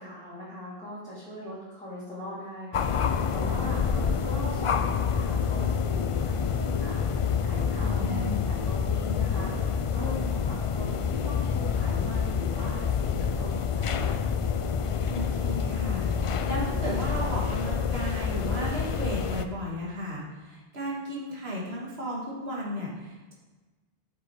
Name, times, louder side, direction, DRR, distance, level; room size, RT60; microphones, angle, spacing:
voice 1, 0.0-14.3, equal, 5° left, -12 dB, 2.8 m, -40 dB
sound 1, 2.7-19.5, left 6 dB, 55° left, 0.3 m, -27 dB
voice 2, 7.8-8.4 15.1-23.3, equal, 80° right, -4 dB, 2.1 m, -34 dB
7.1 x 6.8 x 4.8 m, 1.2 s
omnidirectional pair, 1.0 m